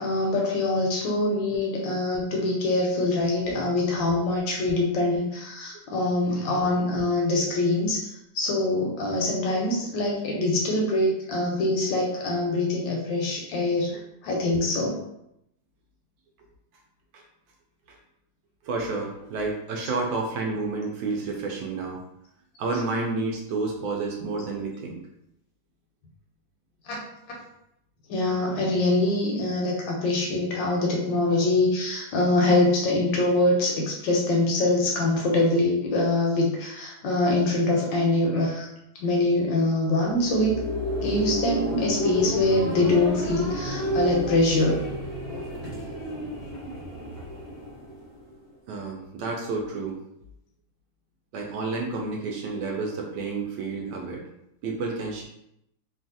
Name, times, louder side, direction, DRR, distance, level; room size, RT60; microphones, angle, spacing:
voice 1, 0.0-8.0 8.3-15.0 26.8-27.0 28.1-38.7 39.0-40.6 41.0-44.8, left 2 dB, 75° left, -1 dB, 1.2 m, -24 dB
voice 2, 18.6-22.0 22.6-25.0 48.7-50.0 51.3-54.2 54.6-55.3, right 3 dB, 75° right, 0 dB, 1.2 m, -30 dB
sound 1, 39.8-48.5, equal, 50° left, 0.7 m, -31 dB
3.2 x 2.4 x 2.6 m, 0.79 s
omnidirectional pair, 2.3 m